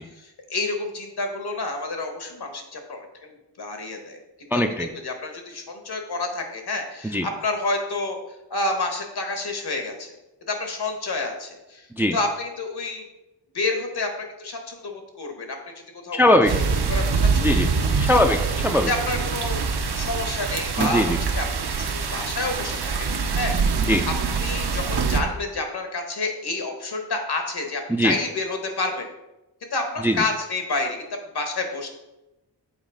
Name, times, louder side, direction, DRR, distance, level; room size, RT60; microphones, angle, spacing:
voice 1, 0.1-4.2 4.5-10.2 10.5-13.1 13.5-15.7 16.0-16.2 16.8-18.4 18.8-29.1 29.7-31.0 31.3-31.9, left 2 dB, 65° left, 4 dB, 1.2 m, -29 dB
voice 2, 4.5-4.9 7.1-7.3 12.0-12.2 16.1-16.5 17.4-17.7 18.0-18.9 20.8-21.2 23.8-24.0 27.9-28.1 30.0-30.2, left 1 dB, 5° right, 6 dB, 0.3 m, -20 dB
sound 1, 16.5-25.2, right 5 dB, 65° right, 0.7 m, -24 dB
7.2 x 4.1 x 3.8 m, 0.98 s
wide cardioid pair, 95°, 42 cm